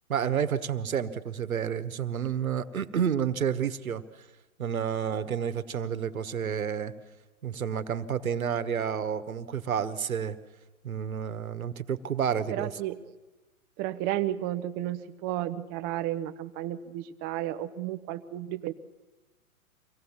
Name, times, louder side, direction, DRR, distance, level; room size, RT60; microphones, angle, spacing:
voice 1, 0.1-4.0 4.6-6.9 7.4-10.4 10.8-12.7, right 8 dB, 70° right, 12 dB, 1.3 m, -30 dB
voice 2, 12.5-13.0 13.8-18.7, right 13 dB, 20° right, 12 dB, 0.7 m, -32 dB
25.0 x 17.5 x 7.2 m, 1.2 s
figure-of-eight pair, 115°, 43 cm